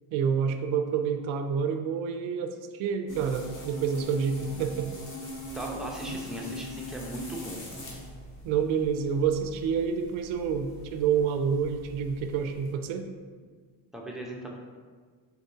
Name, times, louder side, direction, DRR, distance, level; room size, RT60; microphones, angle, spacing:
voice 1, 0.1-4.9 8.4-13.1, right 7 dB, 85° right, 7 dB, 0.5 m, -28 dB
sound 1, 3.1-12.7, equal, 40° left, 1.3 m, -42 dB
voice 2, 5.5-7.6 13.9-14.5, right 1 dB, ahead, -3 dB, 0.9 m, -37 dB
4.4 x 4.3 x 2.7 m, 1.5 s
cardioid pair, 80°, 46 cm